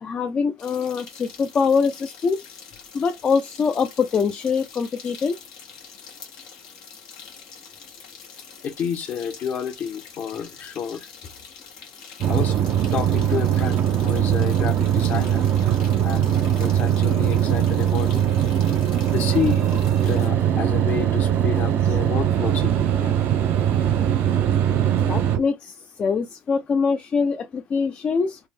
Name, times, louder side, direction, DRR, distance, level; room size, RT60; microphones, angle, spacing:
voice 1, 0.0-2.4 2.9-5.4 25.1-28.4, left 5 dB, 35° left, 0.5 m, -23 dB
sound 1, 0.6-20.3, left 6 dB, 90° left, 1.2 m, -45 dB
voice 2, 8.6-11.1 12.3-12.5 12.9-15.5 16.0-18.2 19.1-19.8 20.1-23.4, left 7 dB, 50° left, 0.9 m, -30 dB
sound 2, 12.2-25.4, right 10 dB, 55° right, 0.5 m, -21 dB
sound 3, 18.2-25.4, right 7 dB, 70° right, 1.1 m, -38 dB
3.5 x 2.0 x 3.3 m
supercardioid pair, 90°, 4 cm